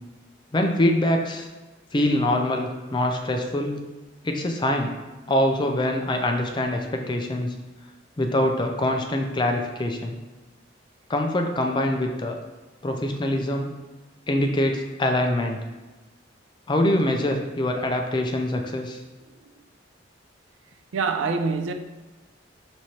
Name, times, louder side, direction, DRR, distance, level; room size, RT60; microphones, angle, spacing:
voice 1, 0.5-1.5 1.9-3.9 4.2-4.9 5.3-7.5 8.2-10.2 11.1-12.4 12.8-13.7 14.3-15.6 16.7-19.0, left 1 dB, 25° left, 0.4 m, -24 dB
voice 2, 20.9-21.7, right 4 dB, 90° right, 0.4 m, -25 dB
6.1 x 3.1 x 2.8 m
head